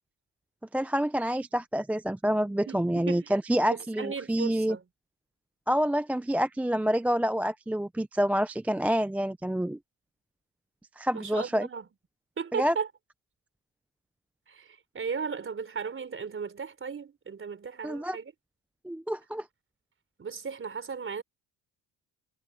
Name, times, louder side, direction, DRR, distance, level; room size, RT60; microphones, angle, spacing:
voice 1, 0.7-4.8 5.7-9.8 11.0-11.7 12.5-12.7 17.8-18.2 18.8-19.5, equal, 5° right, 0.3 m, -27 dB
voice 2, 2.7-3.3 3.7-4.8 11.1-11.9 12.4-12.9 14.5-18.3 20.2-21.2, right 6 dB, 30° right, 4.0 m, -36 dB
cardioid pair, 110°, 42 cm